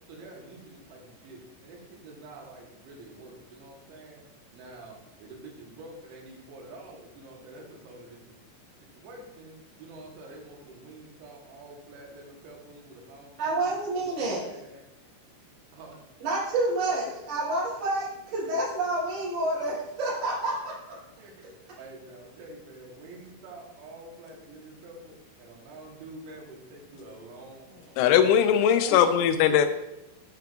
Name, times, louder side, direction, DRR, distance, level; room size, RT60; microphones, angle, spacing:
voice 1, 0.1-4.2 4.5-4.9 5.2-8.4 8.9-13.6 14.1-14.8 15.7-15.9 17.1-17.2 21.2-21.3 21.8-27.7 27.9-28.4, right 2 dB, 75° right, -1 dB, 3.3 m, -47 dB
voice 2, 13.4-14.4 16.2-21.0 27.7-27.8 28.8-29.0, right 2 dB, 40° right, -9 dB, 3.2 m, -29 dB
voice 3, 28.0-29.7, left 9 dB, 85° left, 9 dB, 3.0 m, -20 dB
11.0 x 4.7 x 2.4 m, 0.90 s
omnidirectional pair, 5.5 m